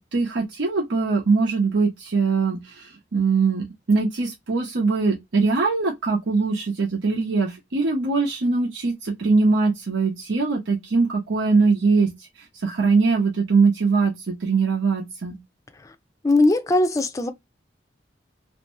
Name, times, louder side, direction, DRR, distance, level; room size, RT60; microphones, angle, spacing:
voice 1, 0.0-12.3 12.6-15.4, right 4 dB, 90° right, 0.7 m, -22 dB
voice 2, 16.2-17.3, left 2 dB, 15° left, 0.4 m, -19 dB
2.5 x 2.1 x 3.0 m
head